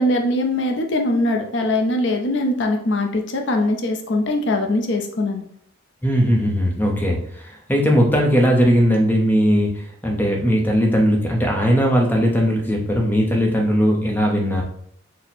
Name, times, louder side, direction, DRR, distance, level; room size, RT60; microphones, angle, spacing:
voice 1, 0.0-5.4, left 1 dB, 60° left, 3 dB, 0.5 m, -21 dB
voice 2, 6.0-14.6, equal, 10° left, 1 dB, 0.6 m, -18 dB
4.2 x 2.1 x 4.1 m, 0.65 s
head